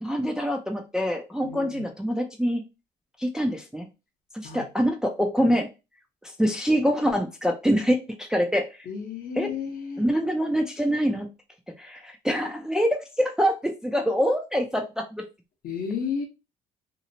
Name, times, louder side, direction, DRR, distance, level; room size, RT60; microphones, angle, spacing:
voice 1, 0.0-2.6 3.2-3.9 4.3-5.7 6.4-8.9 9.4-9.5 10.0-11.3 11.8-15.2, equal, 5° right, 0.4 m, -25 dB
voice 2, 1.4-1.8 4.4-4.7 8.8-10.0 15.6-16.3, left 6 dB, 60° left, 1.0 m, -32 dB
2.8 x 2.0 x 2.7 m
cardioid pair, 110°, 17 cm